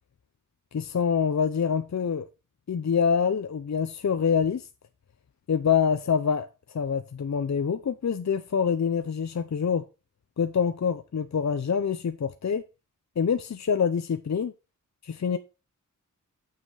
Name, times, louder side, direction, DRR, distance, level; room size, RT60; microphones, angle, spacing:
voice 1, 0.7-2.3 2.7-4.6 5.5-6.5 6.7-9.8 10.4-12.6 13.2-14.5 15.0-15.4, left 6 dB, 55° left, 0.7 m, -25 dB
7.6 x 5.9 x 4.8 m
wide cardioid pair, 75°, 33 cm